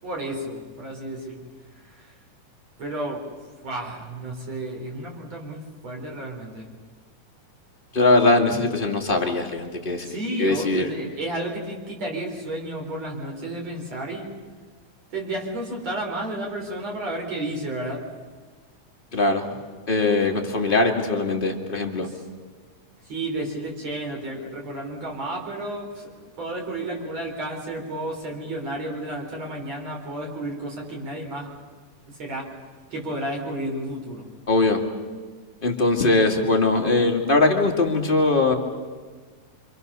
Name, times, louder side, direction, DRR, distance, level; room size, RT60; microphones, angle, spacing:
voice 1, 0.0-1.4 1.8-2.1 2.8-3.3 3.6-6.7 10.0-14.3 15.1-18.1 22.0-22.2 23.0-31.5 32.1-32.5 32.9-34.3, right 1 dB, 50° right, 0 dB, 5.1 m, -32 dB
voice 2, 7.9-10.1 10.4-10.9 19.1-19.4 19.9-22.1 34.5-34.8 35.6-38.5, left 2 dB, 20° left, 1 dB, 2.0 m, -21 dB
26.5 x 26.5 x 6.9 m, 1.5 s
omnidirectional pair, 3.7 m